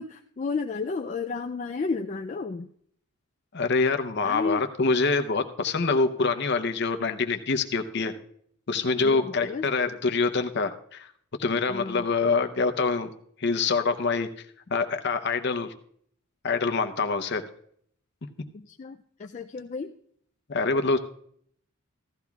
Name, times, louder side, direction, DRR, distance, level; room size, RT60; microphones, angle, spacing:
voice 1, 0.0-2.7 4.2-4.7 9.0-9.6 11.7-12.1 18.5-20.0, left 4 dB, 35° left, 3 dB, 0.3 m, -32 dB
voice 2, 3.5-8.1 8.7-11.1 11.4-13.1 13.4-14.3 14.7-15.7 16.4-17.5 20.5-21.0, left 4 dB, 50° left, 7 dB, 0.7 m, -25 dB
16.0 x 13.5 x 2.3 m, 0.66 s
head